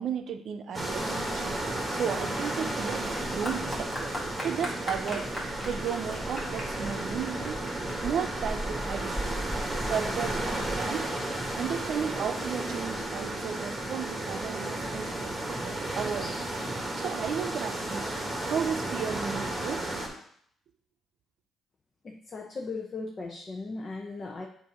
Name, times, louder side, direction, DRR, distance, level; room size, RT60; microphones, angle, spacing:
voice 1, 0.0-1.5 1.9-4.1 4.4-5.3 5.6-7.6 8.0-9.4 9.9-11.1 11.5-16.6 17.0-18.1 18.5-19.9, right 7 dB, 70° right, 8 dB, 0.6 m, -34 dB
sound 1, 0.7-20.1, right 1 dB, 15° right, 1.6 m, -33 dB
Clapping / Applause, 2.4-10.6, equal, 15° left, 2.1 m, -39 dB
voice 2, 22.0-24.5, left 3 dB, 40° left, 1 dB, 0.8 m, -37 dB
7.5 x 2.7 x 5.6 m, 0.64 s
cardioid pair, 90°, 0 cm